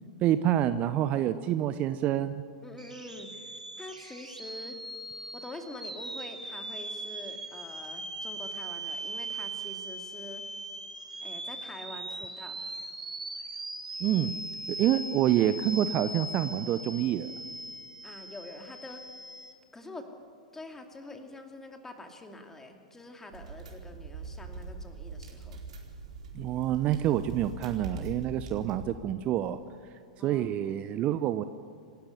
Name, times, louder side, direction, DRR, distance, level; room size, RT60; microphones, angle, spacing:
voice 1, 0.2-2.4 14.0-14.3 14.7-17.3 26.3-29.6 30.2-31.4, right 11 dB, 35° right, 12 dB, 0.8 m, -27 dB
voice 2, 2.6-4.8 5.3-10.4 11.2-12.6 18.0-19.1 19.7-20.1 20.5-25.6 30.2-30.8, left 2 dB, 10° left, 4 dB, 2.5 m, -46 dB
sound 1, 2.8-19.5, right 2 dB, 85° right, 2.5 m, -40 dB
sound 2, 23.3-28.9, right 3 dB, 65° right, 4.4 m, -42 dB
27.0 x 13.0 x 9.9 m, 2.1 s
figure-of-eight pair, 95°, 4 cm